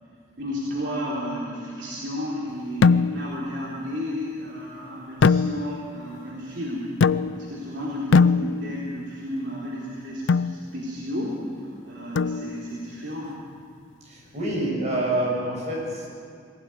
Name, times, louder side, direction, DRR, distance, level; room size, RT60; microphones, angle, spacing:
voice 1, 0.4-13.4, equal, 60° right, -6 dB, 3.8 m, -33 dB
sound 1, 2.8-3.4 5.2-6.0 7.0-7.6 8.1-8.9 10.3-10.6 12.2-12.8, left 5 dB, 70° left, 0.4 m, -21 dB
voice 2, 14.0-16.1, right 1 dB, 35° right, -3 dB, 7.7 m, -27 dB
21.5 x 16.0 x 9.3 m, 2.3 s
head